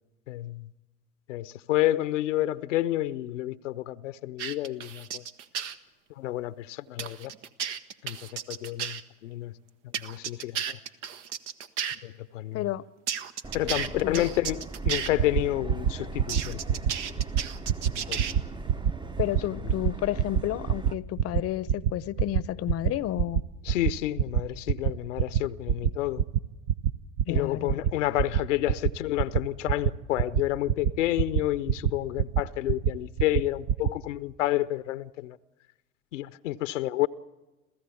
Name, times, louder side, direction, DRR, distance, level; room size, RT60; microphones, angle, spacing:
voice 1, 0.3-0.7 1.3-5.2 6.2-7.3 8.0-9.5 9.8-10.8 12.0-12.7 13.5-16.8 18.0-18.4 19.6-19.7 23.6-26.2 27.3-35.4 36.1-37.1, left 15 dB, 80° left, 0.7 m, -30 dB
sound 1, 4.4-5.8 7.0-9.0 9.9-12.0 13.1-15.1 16.3-18.3, right 8 dB, 75° right, 1.1 m, -33 dB
voice 2, 12.5-12.8 14.0-14.2 19.2-23.4 27.3-27.8, left 14 dB, 40° left, 0.7 m, -31 dB
Subway metro underground, 13.4-20.9, right 2 dB, 15° right, 0.7 m, -40 dB
sound 2, 14.8-14.9 15.2-15.4 15.7-15.9 16.2-16.4 16.7-16.9 17.2-17.4 17.7-17.9 18.2-18.4 18.7-18.9 19.2-19.4 19.7-19.9 20.2-20.4 20.7-20.9 21.2-21.4 21.7-21.9 22.2-22.4 22.7-22.9 23.2-23.4 23.7-23.9 24.2-24.4 24.7-24.9 25.2-25.4 25.7-25.9 26.2-26.4 26.7-26.9 27.2-27.4 27.7-27.9 28.2-28.4 28.7-28.9 29.2-29.4 29.7-29.9 30.2-30.4 30.7-30.9 31.2-31.4 31.7-31.9 32.2-32.4 32.7-32.9 33.2-33.4 33.7-33.9, right 9 dB, 50° right, 0.8 m, -24 dB
27.5 x 15.5 x 8.4 m
hypercardioid pair, 70°, 36 cm